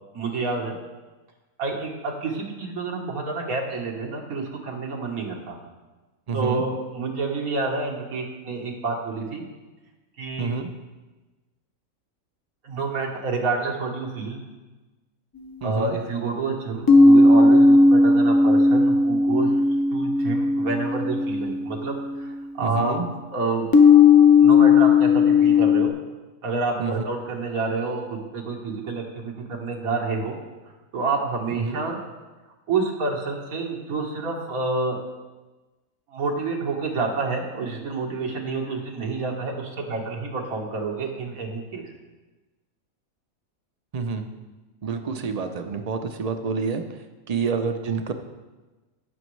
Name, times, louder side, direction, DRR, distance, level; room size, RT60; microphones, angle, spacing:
voice 1, 0.1-0.8 1.6-5.6 6.3-9.4 10.2-10.5 12.6-14.4 15.6-19.5 19.9-23.0 23.3-23.7 24.4-25.9 26.4-30.4 30.9-32.0 32.7-35.0 36.1-41.8, right 3 dB, 90° right, 0 dB, 1.8 m, -28 dB
voice 2, 6.3-6.6 10.4-10.7 15.6-16.0 22.6-23.1 26.8-27.0 31.5-31.8 43.9-44.3 44.8-48.1, right 5 dB, 50° right, 7 dB, 0.5 m, -28 dB
Zen Gong (Scale B), 15.4-15.5 16.9-22.3 23.7-25.9, left 3 dB, 30° left, 0.4 m, -16 dB
16.5 x 6.1 x 3.2 m, 1.2 s
omnidirectional pair, 1.4 m